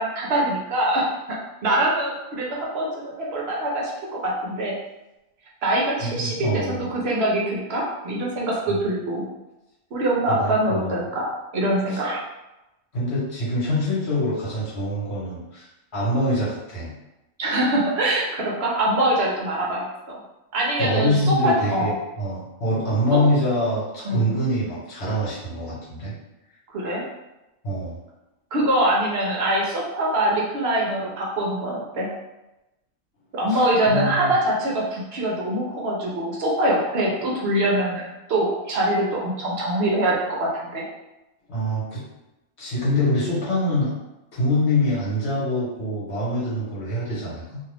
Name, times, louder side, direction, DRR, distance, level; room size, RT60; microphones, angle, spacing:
voice 1, 0.0-4.7 5.6-9.2 9.9-12.2 17.4-20.2 20.5-21.9 23.1-23.2 24.0-24.3 26.7-27.0 28.5-32.1 33.3-40.9, right 1 dB, 60° right, -3 dB, 0.8 m, -24 dB
voice 2, 6.0-6.9 10.3-11.0 11.9-12.0 12.9-15.7 15.9-16.9 20.8-26.1 27.6-27.9 33.5-34.3 41.5-42.0 42.6-43.9 44.3-47.6, left 1 dB, 50° left, -7 dB, 1.4 m, -24 dB
2.6 x 2.4 x 3.3 m, 0.96 s
omnidirectional pair, 1.5 m